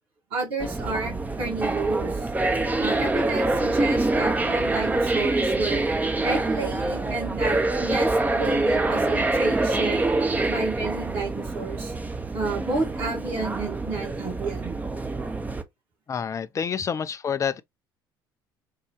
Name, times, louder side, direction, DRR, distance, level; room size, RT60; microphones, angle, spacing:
voice 1, 0.3-2.2 2.8-5.8 6.2-10.1 10.5-11.9 12.3-14.8, right 3 dB, 50° right, 1.9 m, -30 dB
sound 1, 0.6-15.6, right 2 dB, 15° right, 0.6 m, -25 dB
voice 2, 16.1-17.6, left 7 dB, 25° left, 0.4 m, -28 dB
3.8 x 2.3 x 3.1 m
figure-of-eight pair, 60°, 12 cm